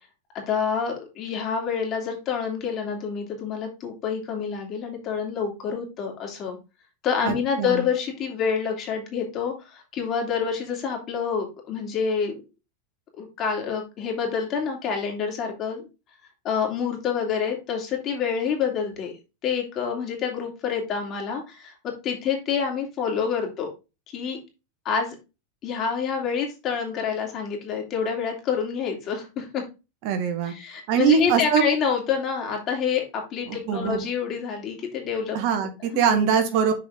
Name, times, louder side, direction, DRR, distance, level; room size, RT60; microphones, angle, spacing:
voice 1, 0.5-6.6 7.0-12.4 13.2-15.9 16.4-19.1 19.4-23.7 24.1-24.4 24.8-25.2 25.6-29.6 30.4-35.4 35.9-36.3, left 6 dB, 35° left, 1 dB, 3.0 m, -27 dB
voice 2, 7.2-7.8 30.0-30.5 30.9-31.6 33.5-34.0 35.3-36.7, right 8 dB, 55° right, 6 dB, 1.8 m, -22 dB
6.9 x 4.9 x 3.7 m, 0.28 s
supercardioid pair, 135°, 0 cm